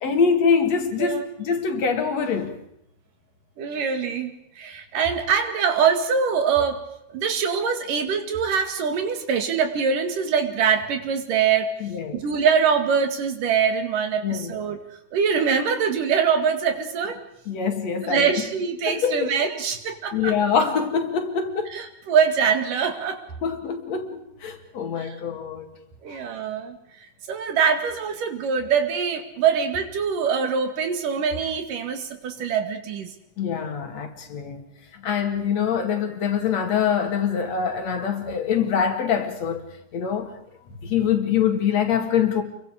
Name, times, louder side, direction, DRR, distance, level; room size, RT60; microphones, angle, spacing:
voice 1, 0.0-2.6 11.8-12.2 14.2-14.6 17.5-18.4 18.9-19.4 20.1-21.8 23.4-25.7 26.1-26.2 33.4-34.7 34.9-39.7 39.9-40.3 40.8-42.4, left 7 dB, 55° left, 3.2 m, -24 dB
voice 2, 3.6-6.9 7.1-11.7 12.1-14.8 15.1-17.2 18.0-20.4 21.7-23.2 25.0-25.2 26.0-26.8 27.3-33.1, right 6 dB, 80° right, 3.8 m, -23 dB
28.5 x 23.0 x 5.0 m
omnidirectional pair, 3.7 m